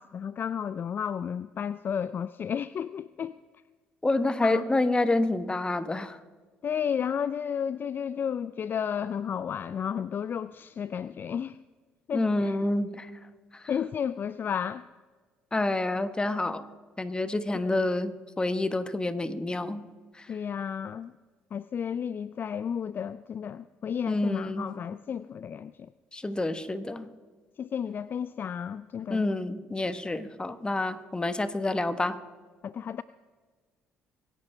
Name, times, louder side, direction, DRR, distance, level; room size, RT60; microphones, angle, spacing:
voice 1, 0.0-3.3 4.4-4.6 6.6-11.6 12.1-12.6 13.7-14.9 17.6-17.8 20.3-21.1 21.5-25.9 27.6-29.2 32.6-33.0, left 8 dB, 45° left, 16 dB, 0.4 m, -32 dB
voice 2, 4.0-6.2 12.1-13.1 13.5-13.6 15.5-16.6 17.0-19.8 20.1-20.3 24.1-24.7 26.1-27.1 29.1-32.2, left 2 dB, 20° left, 12 dB, 1.2 m, -28 dB
24.5 x 10.5 x 3.4 m, 1.4 s
hypercardioid pair, 60°, 5 cm